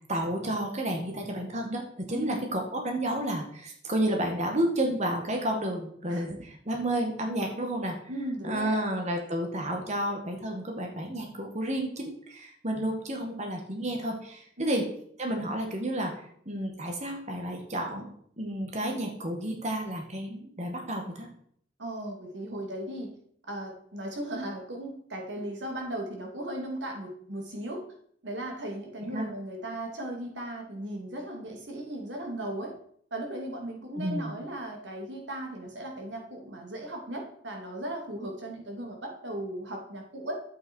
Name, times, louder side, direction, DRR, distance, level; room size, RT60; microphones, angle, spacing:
voice 1, 0.1-7.9 8.4-14.8 15.2-18.1 18.4-21.3 29.0-29.3 34.0-34.3, right 1 dB, 40° right, 2 dB, 2.0 m, -31 dB
voice 2, 6.1-6.4 8.1-8.8 14.6-14.8 21.8-23.2 23.5-27.8 28.2-32.7 33.1-40.4, right 1 dB, 90° right, 1 dB, 2.7 m, -37 dB
11.5 x 8.4 x 4.6 m, 0.64 s
head